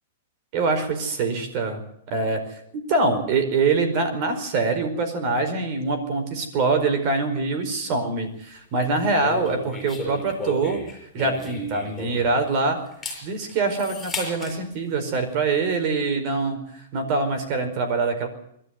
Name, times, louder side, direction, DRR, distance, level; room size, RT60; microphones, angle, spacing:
voice 1, 0.5-1.8 2.1-2.4 2.9-10.8 11.1-12.8 13.2-18.3, right 3 dB, 40° right, 6 dB, 4.8 m, -24 dB
sound 1, 9.2-12.4 12.9-14.6, left 2 dB, 10° left, 6.9 m, -34 dB
21.5 x 13.0 x 9.5 m, 0.73 s
hypercardioid pair, 150°, 0 cm